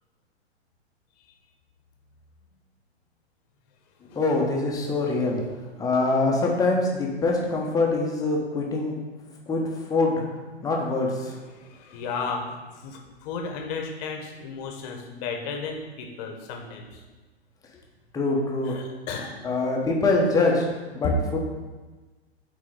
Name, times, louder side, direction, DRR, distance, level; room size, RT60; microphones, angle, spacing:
voice 1, 4.1-5.4 5.8-9.0 9.5-9.6 9.9-10.2 10.6-11.3 18.1-18.8 19.4-20.7 20.9-21.4, left 3 dB, 10° left, -2 dB, 1.0 m, -24 dB
voice 2, 11.5-12.6 12.8-17.0 18.6-19.4 21.0-21.1, left 5 dB, 40° left, 2 dB, 1.2 m, -33 dB
8.5 x 3.8 x 3.8 m, 1.2 s
figure-of-eight pair, 110°, 33 cm